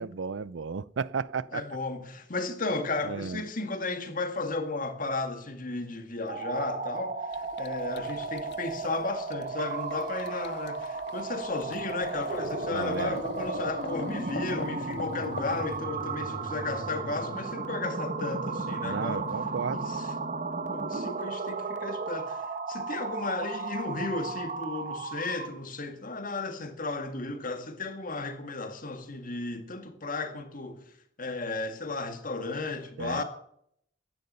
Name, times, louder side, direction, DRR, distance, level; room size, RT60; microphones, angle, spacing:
voice 1, 0.0-1.6 3.1-3.5 12.7-13.2 18.8-19.8 33.0-33.2, right 5 dB, 80° right, 0.5 m, -33 dB
voice 2, 1.5-7.3 7.6-19.3 19.7-20.1 20.7-30.8 31.2-33.2, left 3 dB, 45° left, 2.0 m, -34 dB
sound 1, 6.2-25.6, right 4 dB, 40° right, 1.2 m, -34 dB
sound 2, 7.3-15.8, left 5 dB, 60° left, 0.5 m, -41 dB
15.5 x 10.5 x 5.6 m
head